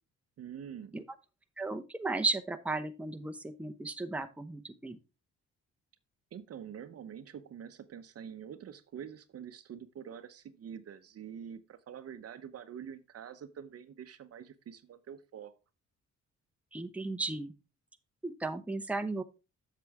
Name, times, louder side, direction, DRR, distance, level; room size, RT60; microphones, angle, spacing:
voice 1, 0.4-1.0 6.3-15.5, right 8 dB, 50° right, 0.8 m, -46 dB
voice 2, 1.6-5.0 16.7-17.5 18.2-19.2, right 3 dB, 5° right, 0.8 m, -35 dB
7.8 x 6.8 x 3.5 m
cardioid pair, 90°, 30 cm